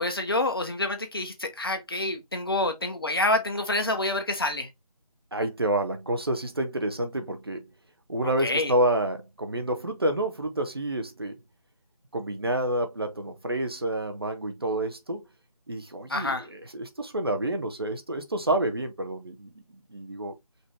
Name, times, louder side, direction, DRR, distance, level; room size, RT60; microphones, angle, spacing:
voice 1, 0.0-4.7 8.4-8.7 16.1-16.5, left 2 dB, 35° left, 0.9 m, -27 dB
voice 2, 5.3-7.7 8.1-11.4 12.1-15.3 15.7-20.3, right 1 dB, 40° right, 0.8 m, -29 dB
5.3 x 2.7 x 3.4 m
figure-of-eight pair, 170°, 20 cm